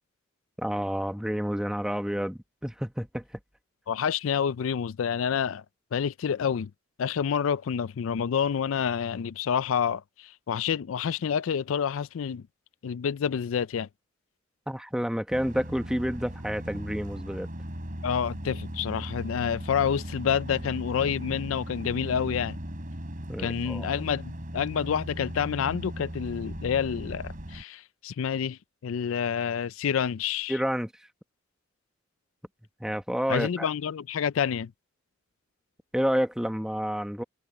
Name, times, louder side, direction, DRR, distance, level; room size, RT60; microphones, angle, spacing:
voice 1, 0.6-3.2 14.7-17.5 23.3-23.9 30.5-30.9 32.8-33.7 35.9-37.2, equal, 5° right, 1.2 m, -29 dB
voice 2, 3.9-5.6 5.9-6.7 7.0-12.4 12.8-13.9 18.0-22.6 23.4-30.5 33.3-34.7, left 7 dB, 85° left, 0.4 m, -28 dB
sound 1, 15.3-27.6, equal, 45° right, 3.6 m, -37 dB
head